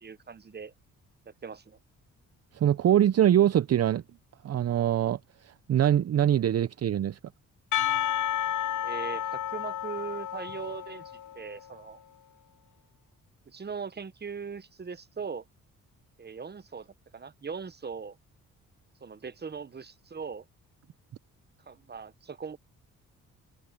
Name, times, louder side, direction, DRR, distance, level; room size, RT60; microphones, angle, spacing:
voice 1, 0.0-0.7 1.2-1.8 8.8-11.0 11.3-12.0 13.5-15.4 16.2-18.2 19.0-20.4 21.7-22.6, right 6 dB, 30° right, 1.1 m, -40 dB
voice 2, 2.5-4.0 4.4-7.2, right 10 dB, 45° right, 0.7 m, -24 dB
Percussion, 7.7-11.6, left 11 dB, 60° left, 1.0 m, -31 dB
open air
supercardioid pair, 60°, 34 cm